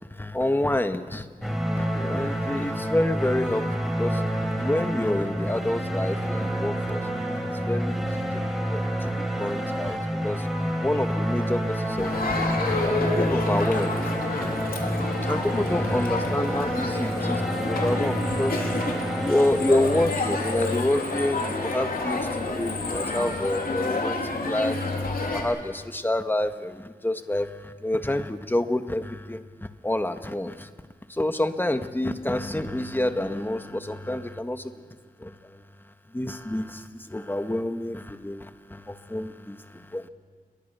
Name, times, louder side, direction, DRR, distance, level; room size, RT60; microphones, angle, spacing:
voice 1, 0.1-4.2 4.6-8.4 8.7-10.5 10.8-14.1 14.4-14.5 15.2-18.6 18.9-24.8 25.2-29.4 29.8-30.7 31.1-34.7 35.2-35.6 36.1-40.1, left 1 dB, 15° left, 8 dB, 1.4 m, -28 dB
sound 1, 1.4-20.3, right 1 dB, ahead, 4.2 m, -28 dB
Crowd, 12.0-25.4, left 3 dB, 80° left, 3.6 m, -29 dB
28.5 x 22.5 x 6.9 m, 1.5 s
wide cardioid pair, 90°, 15 cm